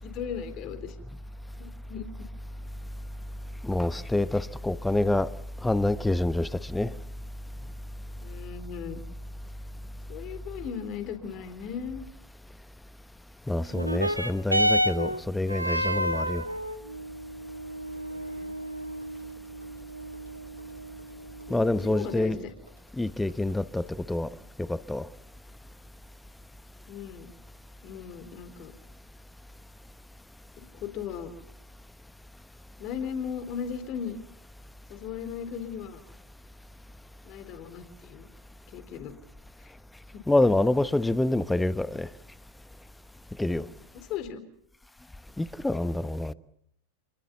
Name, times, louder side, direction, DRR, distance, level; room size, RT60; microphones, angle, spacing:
voice 1, 0.0-1.0 1.6-2.3 8.2-9.0 10.1-12.0 18.0-18.6 21.5-22.5 26.9-27.3 27.8-28.7 30.6-31.3 32.8-34.2 34.9-36.0 37.2-38.3 38.7-39.1 40.1-40.2 43.9-44.4, left 7 dB, 40° left, 3.9 m, -37 dB
voice 2, 3.6-5.3 5.6-6.9 13.5-16.5 21.5-22.4 22.9-24.3 24.6-25.1 40.3-42.1 43.4-43.7 45.4-46.3, left 2 dB, 5° left, 1.1 m, -26 dB
sound 1, 13.7-22.7 23.5-23.6, equal, 90° right, 1.8 m, -31 dB
28.5 x 22.0 x 7.1 m
figure-of-eight pair, 90°, 0 cm